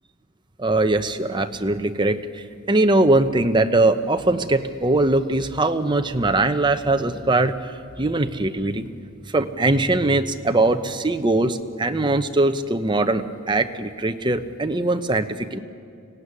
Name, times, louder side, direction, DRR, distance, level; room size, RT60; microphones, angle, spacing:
voice 1, 0.6-7.5 8.0-8.9 9.3-15.6, right 2 dB, 20° right, 8 dB, 0.9 m, -21 dB
24.5 x 17.0 x 9.8 m, 2.3 s
head